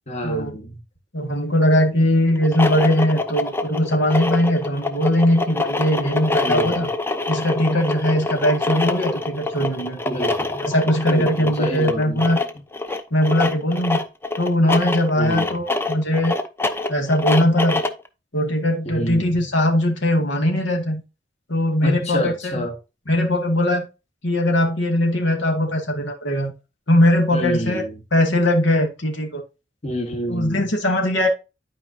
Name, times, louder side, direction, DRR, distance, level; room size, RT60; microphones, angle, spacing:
voice 1, 0.1-0.8 6.4-6.8 10.1-10.6 11.1-12.3 15.1-15.5 18.9-19.4 21.8-22.7 27.3-28.0 29.8-30.7, left 1 dB, 40° left, 1.8 m, -28 dB
voice 2, 1.1-6.9 7.3-10.0 10.6-12.4 13.1-14.0 14.4-16.3 16.9-17.8 18.3-21.0 21.5-22.6 23.1-23.9 24.2-26.5 26.9-27.8 28.1-29.4 30.3-31.3, left 1 dB, 80° left, 2.3 m, -20 dB
sound 1, 2.4-18.1, left 3 dB, 15° left, 0.8 m, -25 dB
11.5 x 5.0 x 2.8 m
head